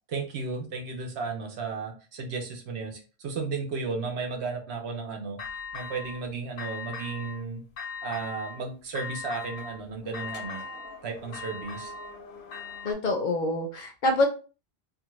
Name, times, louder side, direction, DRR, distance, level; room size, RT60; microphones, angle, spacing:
voice 1, 0.1-5.4 5.7-7.6 8.0-10.6 11.0-11.9, right 4 dB, 80° right, 2 dB, 0.9 m, -34 dB
sound 1, 5.4-6.2 6.6-7.4 7.8-8.6 8.9-12.9, left 4 dB, 80° left, 1.0 m, -39 dB
voice 2, 12.8-14.3, left 2 dB, 55° left, 3 dB, 0.6 m, -26 dB
2.5 x 2.4 x 2.9 m, 0.35 s
omnidirectional pair, 1.1 m